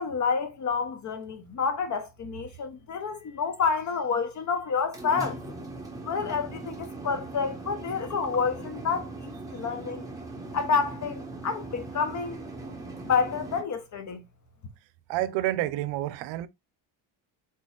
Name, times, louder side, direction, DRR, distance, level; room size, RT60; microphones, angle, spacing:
voice 1, 0.0-5.4 6.0-10.1 10.5-12.4 13.0-14.2, left 5 dB, 40° left, 0.6 m, -29 dB
sound 1, 4.7-13.6, right 2 dB, 10° right, 1.0 m, -40 dB
voice 2, 15.1-16.5, right 14 dB, 75° right, 0.5 m, -29 dB
4.0 x 4.0 x 2.3 m
cardioid pair, 110°, 44 cm